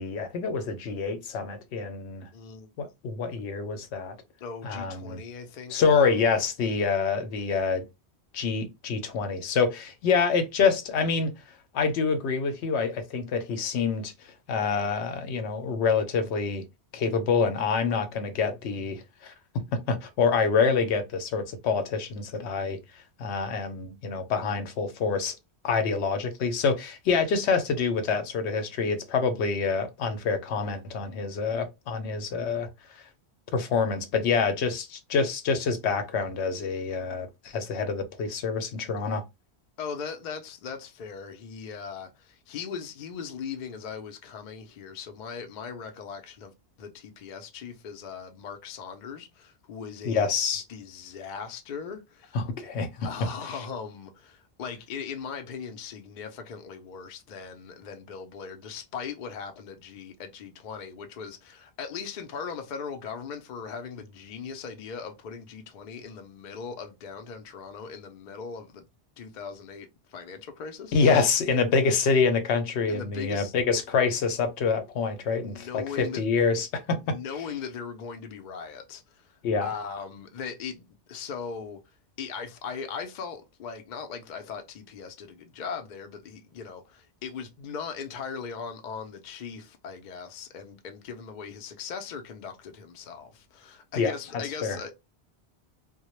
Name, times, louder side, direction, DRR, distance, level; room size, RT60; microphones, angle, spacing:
voice 1, 0.0-2.3 2.8-4.2 4.6-5.2 5.7-7.8 8.3-11.3 11.7-14.1 14.5-16.6 16.9-19.3 19.9-22.8 23.2-25.4 25.6-32.7 32.9-33.0 33.5-39.2 50.0-50.6 52.3-53.1 53.5-53.6 70.9-77.1 79.4-79.7 94.0-94.1 94.6-94.8, left 5 dB, 85° left, 0.9 m, -26 dB
voice 2, 2.3-2.7 4.4-6.1 39.8-46.5 46.8-50.2 50.7-52.4 53.0-68.9 69.2-70.9 72.9-73.5 75.4-76.2 77.1-81.8 82.2-94.9, left 6 dB, 55° left, 0.6 m, -39 dB
2.2 x 2.0 x 2.9 m
omnidirectional pair, 1.1 m